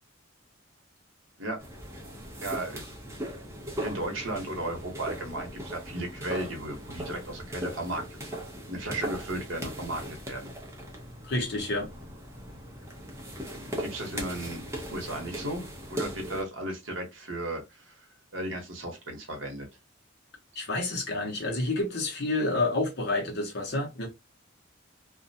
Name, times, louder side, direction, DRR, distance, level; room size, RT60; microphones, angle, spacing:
sound 1, 1.6-16.4, equal, 15° right, 0.6 m, -39 dB
voice 1, 2.4-2.8 3.8-8.4 8.7-10.5 13.6-15.6 15.9-18.0 18.3-19.7, right 1 dB, 65° right, 0.9 m, -35 dB
voice 2, 11.2-11.9 20.5-24.1, left 2 dB, 55° left, 0.9 m, -29 dB
2.4 x 2.1 x 2.6 m
head